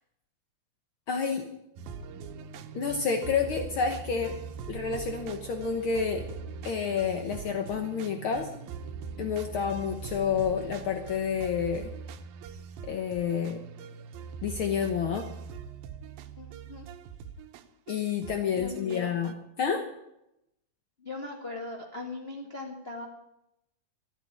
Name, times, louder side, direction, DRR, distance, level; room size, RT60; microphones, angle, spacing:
voice 1, 1.1-1.5 2.7-4.3 4.7-6.3 6.6-8.5 9.2-11.9 12.8-13.6 14.4-15.3 17.9-19.8, left 6 dB, 80° left, 5 dB, 1.1 m, -29 dB
sound 1, 1.8-19.3, right 6 dB, 85° right, 2.7 m, -42 dB
voice 2, 16.4-16.8 18.5-19.1 21.0-23.1, left 3 dB, 30° left, 0 dB, 1.2 m, -39 dB
14.0 x 9.1 x 9.6 m, 0.83 s
omnidirectional pair, 4.1 m